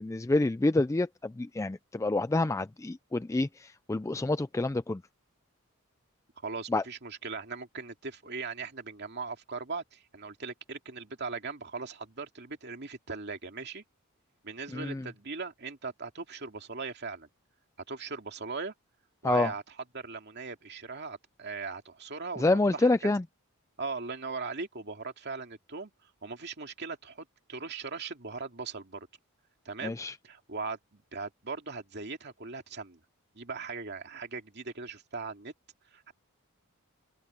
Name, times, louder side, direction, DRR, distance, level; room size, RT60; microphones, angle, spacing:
voice 1, 0.0-5.0 6.7-6.8 14.7-15.1 19.2-19.5 22.4-23.2 29.8-30.2, left 2 dB, 15° left, 0.3 m, -28 dB
voice 2, 6.4-13.8 14.4-17.3 17.9-18.7 19.2-19.6 19.9-22.4 22.7-22.9 23.8-29.1 29.6-30.0 30.2-33.0 33.3-35.5 35.9-36.1, right 4 dB, 50° right, 2.5 m, -39 dB
open air
head